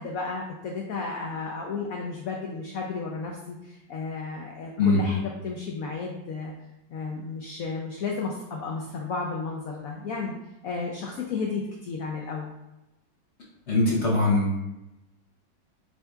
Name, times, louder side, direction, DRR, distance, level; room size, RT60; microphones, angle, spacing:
voice 1, 0.0-6.5 6.9-10.3 10.6-12.5, left 4 dB, 85° left, 0 dB, 0.7 m, -33 dB
voice 2, 13.7-14.6, left 3 dB, 50° left, -5 dB, 0.9 m, -21 dB
7.7 x 2.7 x 2.3 m, 0.96 s
omnidirectional pair, 2.1 m